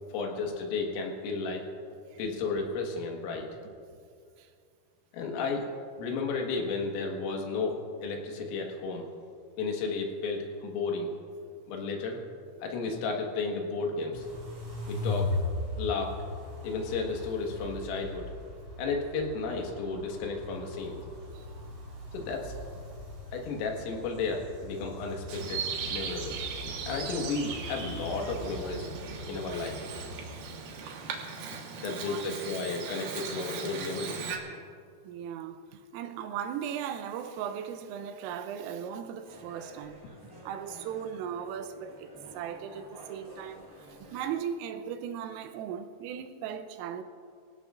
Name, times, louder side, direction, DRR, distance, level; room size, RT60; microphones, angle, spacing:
voice 1, 0.1-1.7 2.2-3.5 5.1-5.7 6.0-9.1 9.6-11.1 11.7-12.2 12.6-14.3 14.9-15.3 15.8-16.2 16.6-18.3 18.8-21.0 22.1-22.5 23.3-25.6 25.9-26.4 26.9-28.9 29.2-29.8 31.8-34.3, left 4 dB, 80° left, 4.2 m, -33 dB
sound 1, 14.1-30.4, left 2 dB, 30° right, 5.0 m, -39 dB
voice 2, 21.3-21.7 28.2-28.3 31.8-32.2 35.0-40.0 40.4-42.1 42.3-43.7 44.0-47.0, right 8 dB, 85° right, 3.3 m, -38 dB
Bird vocalization bird call bird song, 25.3-34.4, right 6 dB, 65° right, 2.5 m, -38 dB
sound 2, 39.2-44.4, right 1 dB, 15° right, 1.5 m, -51 dB
24.5 x 16.5 x 2.5 m
omnidirectional pair, 6.0 m